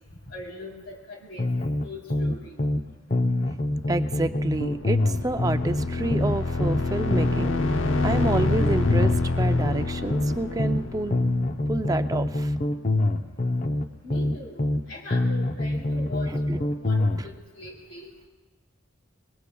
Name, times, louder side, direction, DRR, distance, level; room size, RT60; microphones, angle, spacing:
voice 1, 0.3-2.5 14.0-18.1, left 2 dB, 60° left, -2 dB, 3.3 m, -41 dB
sound 1, 1.4-2.8 3.1-6.8 7.1-10.8 11.1-14.8 15.1-17.2, left 1 dB, 40° left, 0.7 m, -25 dB
voice 2, 3.9-11.2 11.7-12.5 16.5-16.6, right 2 dB, 15° right, 9 dB, 0.4 m, -29 dB
sound 2, 4.3-12.1, left 3 dB, 80° left, 0.8 m, -28 dB
26.0 x 21.0 x 2.3 m, 1.2 s
head